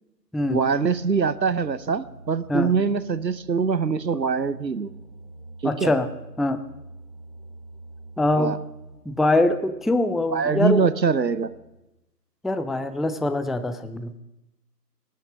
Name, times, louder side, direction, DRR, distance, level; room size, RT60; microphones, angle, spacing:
sound 1, 0.5-11.8, right 1 dB, 20° right, 1.3 m, -46 dB
voice 1, 0.5-4.9 5.6-5.9 8.4-8.6 10.3-11.5, right 5 dB, 85° right, 16 dB, 0.9 m, -23 dB
voice 2, 5.6-6.1 6.4-6.6 8.2-8.6 9.1-10.9 12.4-14.2, left 2 dB, ahead, 11 dB, 0.4 m, -23 dB
19.5 x 6.7 x 5.1 m, 0.93 s
figure-of-eight pair, 160°, 50 cm